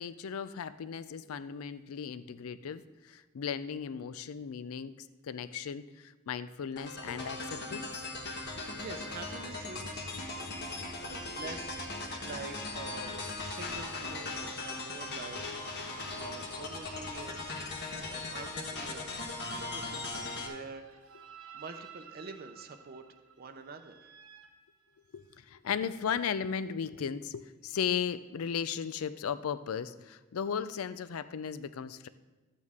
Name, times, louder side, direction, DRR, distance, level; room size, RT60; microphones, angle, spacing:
voice 1, 0.0-8.1 10.8-10.9 11.4-11.5 25.1-32.1, left 7 dB, 90° left, 14 dB, 0.4 m, -36 dB
sound 1, 6.8-20.5, left 2 dB, 55° left, 1.3 m, -39 dB
voice 2, 8.4-10.1 11.0-13.1 13.4-17.6 18.1-23.0 23.4-24.1, right 4 dB, 45° right, 7 dB, 0.6 m, -47 dB
sound 2, 19.4-25.4, right 4 dB, 70° right, 0.8 m, -52 dB
12.5 x 8.4 x 3.6 m, 1.2 s
head